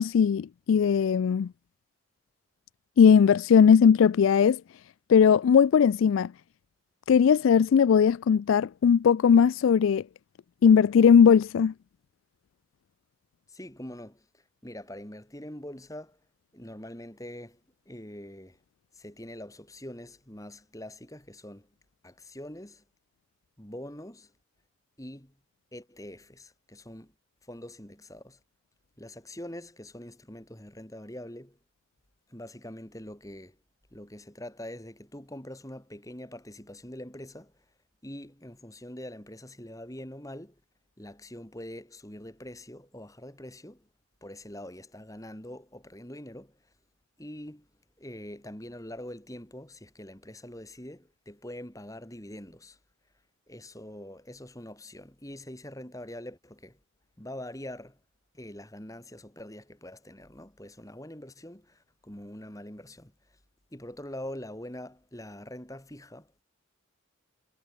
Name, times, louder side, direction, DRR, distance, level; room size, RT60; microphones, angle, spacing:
voice 1, 0.0-1.5 3.0-4.6 5.1-6.3 7.1-10.0 10.6-11.7, left 7 dB, 75° left, 0.3 m, -19 dB
voice 2, 13.5-16.2 16.5-17.6 17.9-18.6 18.9-21.7 22.0-22.8 23.6-24.3 25.0-25.4 25.7-27.1 27.4-28.4 29.0-31.6 32.3-33.6 33.9-37.5 38.0-40.6 41.0-43.9 44.2-46.6 47.2-47.7 48.0-52.8 53.5-56.8 57.2-58.0 58.3-63.1 63.7-66.4, left 1 dB, 15° left, 2.9 m, -44 dB
head